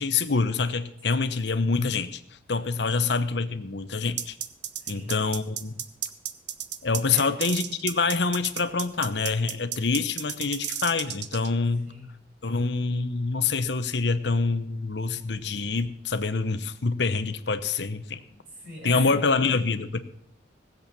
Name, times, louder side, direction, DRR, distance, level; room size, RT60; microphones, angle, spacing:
voice 1, 0.0-2.2 2.5-4.4 4.9-5.7 6.8-11.9 12.4-18.2 18.8-20.0, left 4 dB, 70° left, 11 dB, 0.9 m, -26 dB
sound 1, 4.2-11.5, right 10 dB, 70° right, 0.9 m, -33 dB
voice 2, 4.8-5.2 7.1-7.4 11.9-12.1 18.3-19.4, equal, 50° right, -1 dB, 6.0 m, -41 dB
17.5 x 7.9 x 6.9 m, 0.72 s
head